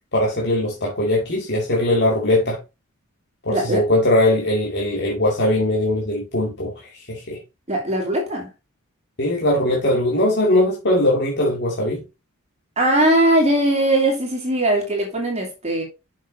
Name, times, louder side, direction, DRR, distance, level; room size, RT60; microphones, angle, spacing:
voice 1, 0.1-2.6 3.4-6.7 7.1-7.4 9.2-12.0, left 1 dB, 50° left, 2.2 m, -20 dB
voice 2, 3.5-3.8 7.7-8.5 12.8-15.8, right 1 dB, 30° right, 2.7 m, -20 dB
7.1 x 6.4 x 3.9 m
head